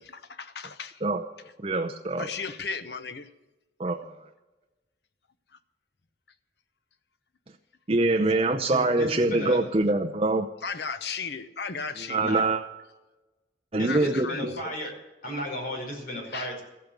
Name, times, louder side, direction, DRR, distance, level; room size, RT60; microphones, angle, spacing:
voice 1, 0.1-1.0 2.2-3.3 8.1-8.2 8.4-8.6 10.6-12.6 13.9-14.5 16.3-16.5, left 5 dB, 70° left, 1.0 m, -35 dB
voice 2, 1.6-2.3 3.8-4.2 7.9-10.5 12.1-12.6 13.7-14.5, right 2 dB, 35° right, 0.7 m, -24 dB
voice 3, 8.3-9.7 12.2-12.4 13.7-14.9 15.2-16.6, equal, 55° left, 5.0 m, -34 dB
14.5 x 8.6 x 8.2 m
head